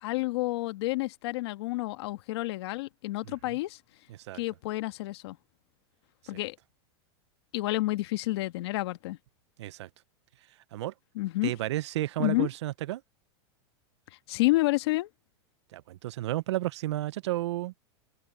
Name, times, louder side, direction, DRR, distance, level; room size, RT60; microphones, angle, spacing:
voice 1, 0.0-3.8 4.3-5.4 6.3-6.5 7.5-9.2 11.1-11.5 12.2-12.5 14.3-15.1, left 19 dB, 70° left, 1.6 m, -29 dB
voice 2, 3.3-3.6 4.1-4.4 9.6-9.9 10.7-10.9 11.4-13.0 15.7-17.7, right 15 dB, 85° right, 0.5 m, -32 dB
open air
supercardioid pair, 140°, 14 cm